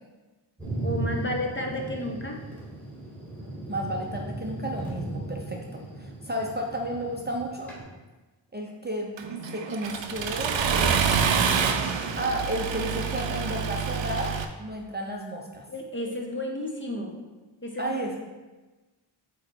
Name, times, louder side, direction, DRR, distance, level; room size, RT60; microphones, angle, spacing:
Thunder, 0.6-7.8, right 2 dB, 5° left, 1.7 m, -36 dB
voice 1, 0.8-2.4 15.7-17.2 17.6-17.9, left 1 dB, 25° left, 1 dB, 0.7 m, -32 dB
voice 2, 3.7-7.7 8.5-15.7 17.8-18.2, right 1 dB, 20° right, 0 dB, 0.5 m, -33 dB
Accelerating revving vroom, 9.2-14.4, right 6 dB, 65° right, 0.6 m, -27 dB
7.7 x 3.0 x 4.4 m, 1.2 s
wide cardioid pair, 155°, 48 cm